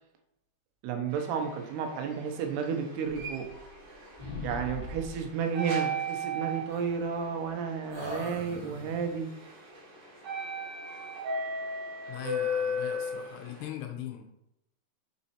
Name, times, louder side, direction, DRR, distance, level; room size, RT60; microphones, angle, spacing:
voice 1, 0.8-3.5 4.4-9.3, right 6 dB, 80° right, 4 dB, 2.8 m, -32 dB
sound 1, 1.1-13.7, equal, 60° right, 2.8 m, -37 dB
sound 2, 3.1-3.9 4.2-5.3 6.7-7.5 7.9-9.1, left 2 dB, 20° right, 1.5 m, -42 dB
voice 2, 12.1-14.3, left 11 dB, 85° left, 4 dB, 2.5 m, -40 dB
6.2 x 4.2 x 4.2 m, 0.84 s
omnidirectional pair, 4.7 m